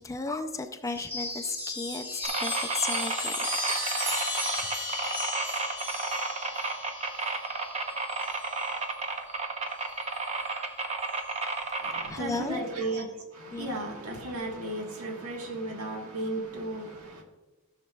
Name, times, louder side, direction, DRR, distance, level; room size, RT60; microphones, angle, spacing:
voice 1, 0.0-3.5 12.1-12.7 13.5-13.7, left 3 dB, 15° left, 0.3 m, -34 dB
Chime, 0.9-8.7 9.9-10.5, left 1 dB, 10° right, 2.2 m, -35 dB
sound 1, 2.2-12.1, right 3 dB, 30° right, 0.8 m, -32 dB
voice 2, 11.8-13.1 13.3-17.2, right 2 dB, 80° right, 1.4 m, -35 dB
13.0 x 6.5 x 2.3 m
head